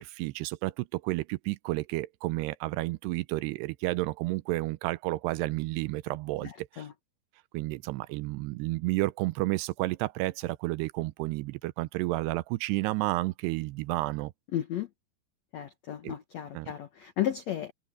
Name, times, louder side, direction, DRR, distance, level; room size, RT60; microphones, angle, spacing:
voice 1, 0.0-6.9 7.5-14.3 16.0-16.1 16.5-16.7, right 19 dB, 80° right, 2.6 m, -31 dB
voice 2, 6.4-6.9 14.5-14.9 15.5-17.7, left 11 dB, 85° left, 1.5 m, -34 dB
omnidirectional pair, 4.9 m